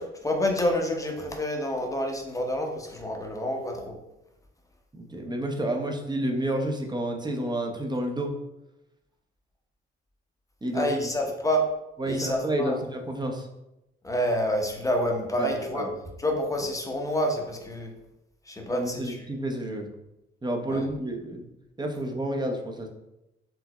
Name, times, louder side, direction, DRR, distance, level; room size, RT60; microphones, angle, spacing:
voice 1, 0.0-4.0 10.7-11.7 12.0-12.8 14.0-15.9 16.2-17.9 18.5-19.3 20.7-20.9, equal, 10° left, 2 dB, 1.0 m, -28 dB
voice 2, 4.9-8.3 10.6-10.9 12.0-13.5 15.4-15.9 18.7-19.9 20.4-21.4 21.8-22.9, right 1 dB, 15° right, 2 dB, 0.8 m, -30 dB
4.7 x 3.7 x 2.2 m, 0.90 s
figure-of-eight pair, 40°, 30 cm